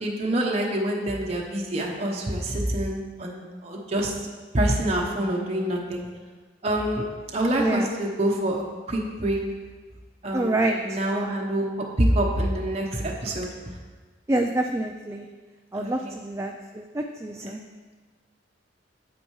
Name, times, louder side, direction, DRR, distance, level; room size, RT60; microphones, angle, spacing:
voice 1, 0.0-4.1 4.5-6.0 6.6-7.0 7.3-9.4 10.2-11.6 12.0-13.5 15.7-16.2 17.4-17.6, right 1 dB, 35° right, -1 dB, 0.9 m, -26 dB
voice 2, 10.3-10.7 11.2-11.3 14.3-15.3 15.7-17.6, right 2 dB, 15° right, 3 dB, 0.3 m, -27 dB
8.8 x 8.4 x 3.1 m, 1.4 s
head